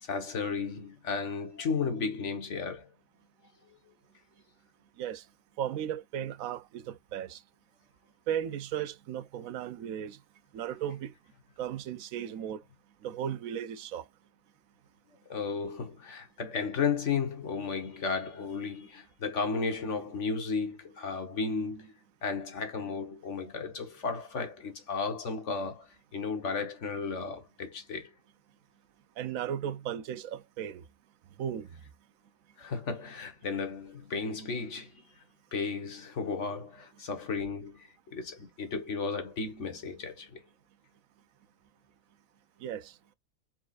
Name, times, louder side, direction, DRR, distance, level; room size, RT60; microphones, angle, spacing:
voice 1, 0.0-2.9 15.3-21.9 22.2-28.1 32.6-35.0 35.5-40.4, left 5 dB, 55° left, 1.5 m, -34 dB
voice 2, 5.6-7.4 8.3-10.2 10.5-11.1 11.6-12.6 13.0-14.0 29.2-30.8 31.4-31.7 42.6-42.9, right 9 dB, 75° right, 1.0 m, -35 dB
4.5 x 4.2 x 2.4 m
omnidirectional pair, 1.5 m